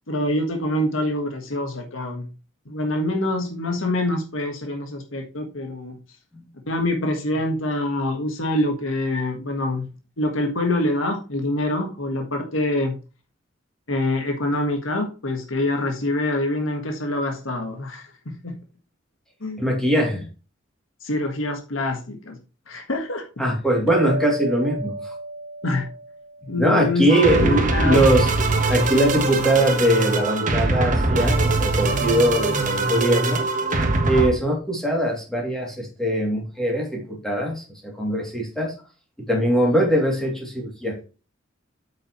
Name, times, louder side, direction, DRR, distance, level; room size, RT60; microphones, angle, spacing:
voice 1, 0.1-2.3 2.7-6.0 6.7-9.9 10.2-13.0 13.9-18.6 19.4-19.6 21.0-22.4 22.7-23.2 25.6-25.8 26.5-27.1 27.4-28.0, left 1 dB, 85° left, 3 dB, 1.6 m, -25 dB
voice 2, 19.6-20.3 23.4-25.1 26.6-28.3 28.7-33.4 34.1-38.7 39.3-41.1, right 1 dB, 5° left, -1 dB, 2.8 m, -21 dB
sound 1, 23.9-26.9, right 2 dB, 85° right, 0.8 m, -32 dB
sound 2, 27.1-34.3, right 2 dB, 40° right, 1.4 m, -22 dB
8.6 x 6.6 x 3.1 m, 0.33 s
head